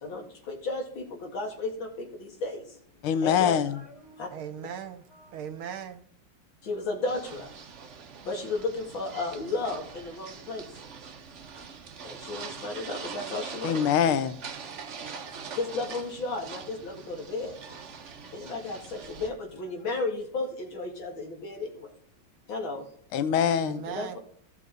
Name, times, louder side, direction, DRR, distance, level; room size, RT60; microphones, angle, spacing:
voice 1, 0.0-2.6 3.2-4.3 6.7-7.5 8.3-10.6 12.0-13.8 15.6-17.5 18.3-21.7 22.5-22.8 23.9-24.2, left 3 dB, 65° left, 2.7 m, -34 dB
voice 2, 3.0-3.7 13.6-14.4 23.1-23.9, left 8 dB, 80° left, 1.6 m, -24 dB
voice 3, 4.3-6.0 23.6-24.2, right 9 dB, 75° right, 1.8 m, -39 dB
sound 1, 7.1-19.3, right 5 dB, 50° right, 0.9 m, -43 dB
15.5 x 6.4 x 4.0 m
omnidirectional pair, 2.4 m